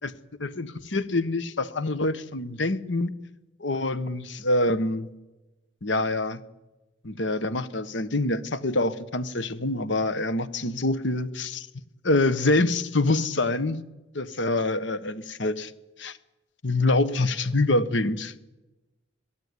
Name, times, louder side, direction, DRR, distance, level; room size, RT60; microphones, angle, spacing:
voice 1, 0.4-3.1 3.6-5.1 5.8-6.4 7.0-11.7 12.0-13.8 14.1-15.7 16.0-16.2 16.6-18.3, left 2 dB, 75° left, 14 dB, 1.4 m, -25 dB
23.0 x 15.0 x 9.9 m, 1.0 s
head